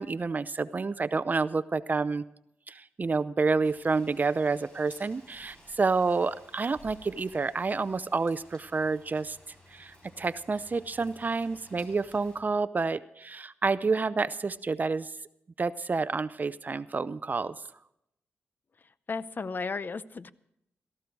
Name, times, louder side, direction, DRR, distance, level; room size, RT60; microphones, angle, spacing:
voice 1, 0.0-2.2 2.7-9.4 9.7-15.1 15.6-17.5, right 4 dB, 40° right, 15 dB, 0.5 m, -29 dB
Rain, 3.6-12.4, equal, 20° left, 7.2 m, -56 dB
voice 2, 19.1-20.3, left 4 dB, 45° left, 16 dB, 0.7 m, -34 dB
17.5 x 14.5 x 4.6 m, 0.80 s
cardioid pair, 70°, 5 cm